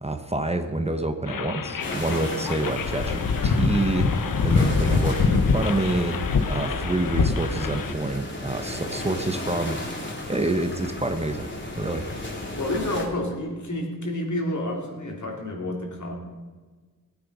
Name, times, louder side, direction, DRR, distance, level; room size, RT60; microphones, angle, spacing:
voice 1, 0.0-6.2 6.5-9.8 10.3-11.5 11.8-12.1, right 2 dB, 20° right, 7 dB, 1.0 m, -27 dB
sound 1, 1.3-7.9, left 4 dB, 80° left, 1.0 m, -25 dB
sound 2, 1.8-13.1, left 1 dB, 35° left, 2.6 m, -35 dB
voice 2, 12.5-16.1, left 1 dB, 60° left, 1 dB, 3.1 m, -29 dB
19.0 x 9.0 x 5.5 m, 1.4 s
wide cardioid pair, 100°, 33 cm